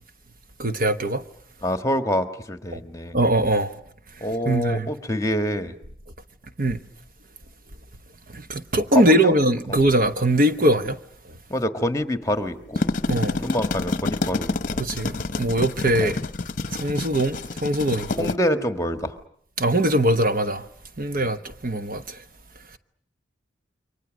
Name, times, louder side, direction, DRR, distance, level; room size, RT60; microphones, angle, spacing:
voice 1, 0.6-1.2 2.7-2.8 3.1-3.7 4.4-4.9 6.6-6.8 8.3-11.0 13.1-13.4 14.8-16.2 16.7-18.3 19.6-20.7 21.0-22.2, right 1 dB, 45° right, 1.1 m, -22 dB
voice 2, 1.6-3.1 4.2-5.7 8.9-9.4 9.7-9.8 11.5-12.8 13.4-14.8 16.0-16.1 18.2-19.2, equal, 15° left, 1.5 m, -26 dB
sound 1, 12.5-18.3, left 3 dB, 45° left, 0.9 m, -28 dB
29.0 x 24.0 x 6.4 m
head